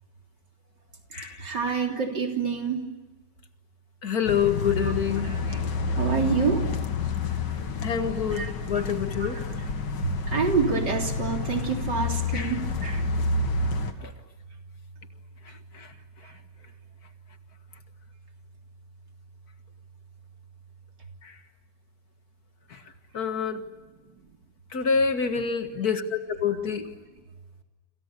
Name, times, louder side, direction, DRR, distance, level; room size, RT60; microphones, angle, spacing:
voice 1, 1.4-2.8 4.8-4.9 5.2-6.6 8.3-8.5 9.2-9.4 10.0-13.0 16.2-16.3, right 5 dB, 80° right, 3 dB, 4.1 m, -28 dB
voice 2, 4.0-5.3 7.8-9.4 12.3-12.5 14.0-14.1 15.7-15.9 21.2-21.3 22.7-22.8 23.1-23.6 24.7-26.9, left 6 dB, 60° left, 7 dB, 2.3 m, -27 dB
sound 1, 4.2-13.9, left 3 dB, 85° left, 2.4 m, -29 dB
28.5 x 27.0 x 6.9 m, 1.2 s
omnidirectional pair, 1.8 m